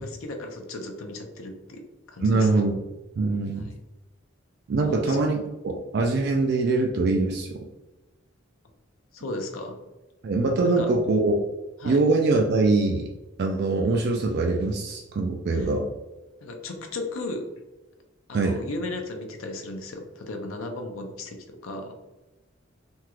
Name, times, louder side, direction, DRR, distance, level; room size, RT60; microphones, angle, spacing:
voice 1, 0.0-2.5 3.6-3.7 4.8-5.2 9.1-9.8 10.8-10.9 11.8-12.0 15.5-15.7 16.4-17.5 18.3-22.0, left 2 dB, 80° left, 3 dB, 0.6 m, -35 dB
voice 2, 2.2-2.8 3.2-3.7 4.7-7.6 10.2-11.4 11.8-13.1 13.4-15.9 18.3-18.6, right 3 dB, 50° right, 1 dB, 0.3 m, -23 dB
3.5 x 2.3 x 2.9 m, 1.1 s
head